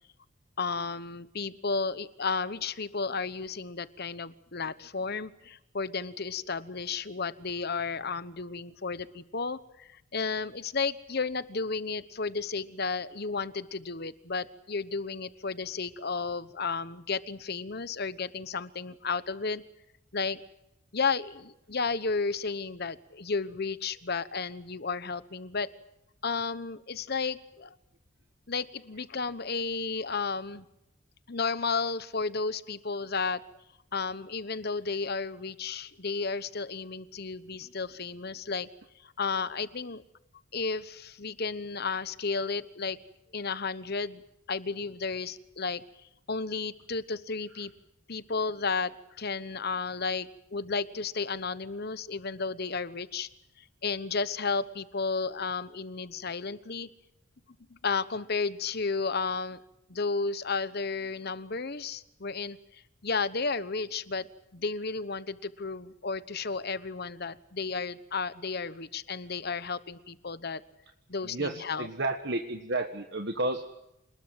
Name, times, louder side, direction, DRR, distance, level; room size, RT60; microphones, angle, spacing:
voice 1, 0.6-19.6 20.1-20.4 20.9-25.7 26.2-27.7 28.5-30.6 31.3-33.4 33.9-38.7 39.0-40.0 40.5-43.0 43.3-44.2 44.5-45.8 46.3-47.7 48.1-53.3 53.8-56.9 57.7-59.6 59.9-64.3 64.5-70.6 71.1-71.9, left 4 dB, 50° left, 15 dB, 1.1 m, -33 dB
voice 2, 71.2-73.7, right 2 dB, 55° right, 6 dB, 1.5 m, -32 dB
27.0 x 20.5 x 7.8 m, 0.84 s
head